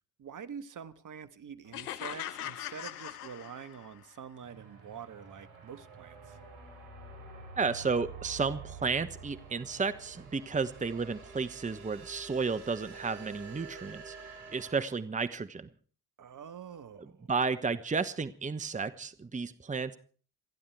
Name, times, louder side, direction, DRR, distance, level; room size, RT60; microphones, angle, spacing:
voice 1, 0.2-6.4 16.2-17.3, right 7 dB, 45° right, 1.5 m, -46 dB
sound 1, 1.7-4.0, left 12 dB, 85° left, 0.8 m, -40 dB
sound 2, 4.4-14.9, right 5 dB, 75° right, 4.7 m, -48 dB
voice 2, 7.6-15.7 17.0-20.0, right 4 dB, 15° right, 1.2 m, -33 dB
28.0 x 11.0 x 4.7 m
hypercardioid pair, 55°, 45 cm